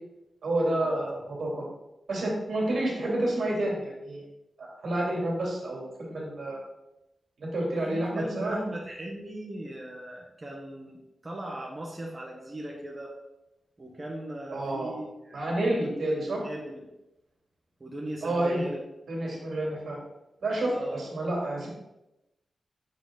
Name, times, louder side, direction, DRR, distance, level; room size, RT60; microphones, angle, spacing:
voice 1, 0.4-1.6 2.1-4.2 4.6-6.6 7.4-8.6 14.5-14.9 15.3-16.4 18.2-18.7 19.1-20.0 20.4-21.7, right 1 dB, 75° right, -3 dB, 2.4 m, -29 dB
voice 2, 7.9-13.2 13.8-15.4 15.8-15.9 16.3-16.9 17.8-18.8 20.7-21.0, right 1 dB, 25° right, -2 dB, 1.0 m, -39 dB
7.2 x 4.0 x 3.8 m, 0.94 s
wide cardioid pair, 130°, 0 cm